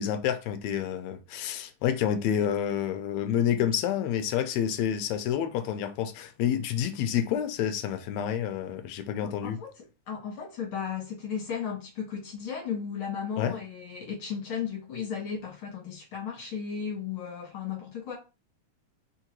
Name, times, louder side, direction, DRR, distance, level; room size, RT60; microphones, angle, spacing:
voice 1, 0.0-9.6 13.4-13.6, left 9 dB, 80° left, 1.7 m, -28 dB
voice 2, 9.2-18.1, left 7 dB, 55° left, 1.7 m, -35 dB
4.4 x 3.7 x 2.9 m
omnidirectional pair, 3.6 m